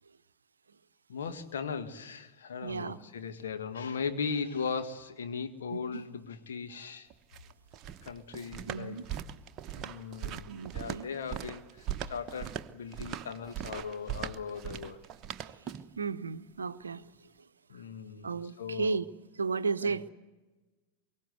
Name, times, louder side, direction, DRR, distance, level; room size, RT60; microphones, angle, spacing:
voice 1, 1.1-7.1 8.0-9.2 9.7-15.0 17.7-19.1 19.8-20.1, left 6 dB, 65° left, 1.6 m, -38 dB
voice 2, 2.6-3.0 5.7-6.0 8.7-9.0 10.5-11.1 16.0-17.0 18.2-19.0 19.4-20.0, right 5 dB, 75° right, 0.7 m, -34 dB
sound 1, 7.1-16.0, right 9 dB, 30° right, 0.9 m, -40 dB
25.0 x 23.0 x 8.1 m
figure-of-eight pair, 90°, 0 cm